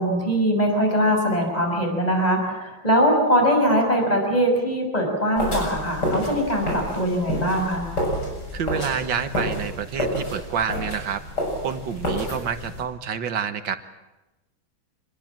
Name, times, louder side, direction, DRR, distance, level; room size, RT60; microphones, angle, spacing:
voice 1, 0.0-7.9, equal, 20° left, 2 dB, 6.3 m, -21 dB
sound 1, 5.4-12.8, equal, 55° left, 8.0 m, -29 dB
voice 2, 8.5-11.2 11.6-13.8, right 7 dB, 70° right, 9 dB, 1.9 m, -28 dB
26.5 x 21.0 x 7.5 m, 1.0 s
omnidirectional pair, 2.1 m